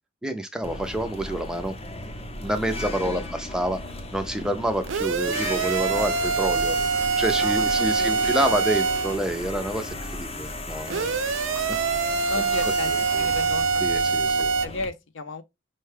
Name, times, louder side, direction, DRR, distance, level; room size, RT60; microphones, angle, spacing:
voice 1, 0.2-1.8 2.4-3.8 4.1-11.2 12.4-13.3 13.8-14.5, right 1 dB, 5° right, 0.4 m, -28 dB
sound 1, 0.6-14.9, left 2 dB, 30° left, 0.7 m, -35 dB
sound 2, 4.9-9.2 10.9-14.7, right 5 dB, 75° right, 0.5 m, -24 dB
voice 2, 7.4-8.3 12.3-12.9 13.2-14.0 14.6-15.4, left 3 dB, 65° left, 0.7 m, -34 dB
5.4 x 2.3 x 3.2 m
head